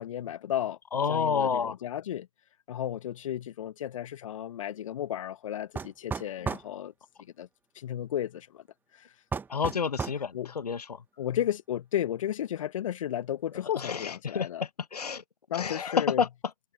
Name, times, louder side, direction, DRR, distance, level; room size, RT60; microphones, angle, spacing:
voice 1, 0.0-0.8 1.1-2.3 2.7-6.9 7.4-7.5 7.7-8.6 8.9-9.1 10.3-10.5 11.2-14.6 15.5-16.2, left 11 dB, 55° left, 1.2 m, -33 dB
voice 2, 0.9-1.7 9.5-11.0 13.8-14.5 14.9-15.2 15.5-16.3, left 6 dB, 75° left, 1.1 m, -29 dB
sound 1, 5.8-6.7 9.3-10.2, right 5 dB, 10° right, 1.5 m, -33 dB
figure-of-eight pair, 120°, 20 cm